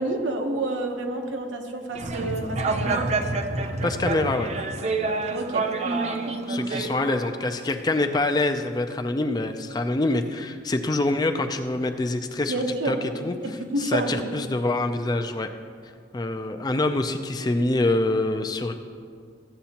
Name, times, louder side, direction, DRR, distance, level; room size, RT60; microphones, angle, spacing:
voice 1, 0.0-3.1 5.3-5.7 12.5-12.9 13.4-14.1, right 2 dB, 85° right, 3 dB, 1.0 m, -28 dB
sound 1, 1.9-6.9, right 3 dB, 35° right, 0.5 m, -27 dB
voice 2, 3.8-4.5 6.5-12.5 12.9-13.0 13.2-15.5 16.1-18.7, left 2 dB, 20° left, 6 dB, 0.4 m, -25 dB
14.5 x 8.0 x 2.9 m, 2.1 s
head